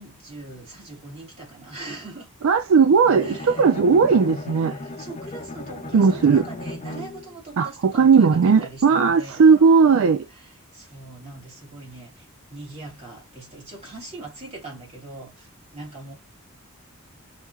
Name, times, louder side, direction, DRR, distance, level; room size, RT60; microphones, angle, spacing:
voice 1, 0.0-2.3 3.1-3.7 4.7-16.1, right 2 dB, 30° right, 2.6 m, -41 dB
voice 2, 2.4-4.7 5.9-6.4 7.6-10.2, right 5 dB, 65° right, 0.4 m, -17 dB
Bowed string instrument, 3.0-7.4, left 2 dB, 30° left, 0.5 m, -35 dB
5.8 x 2.8 x 2.3 m
head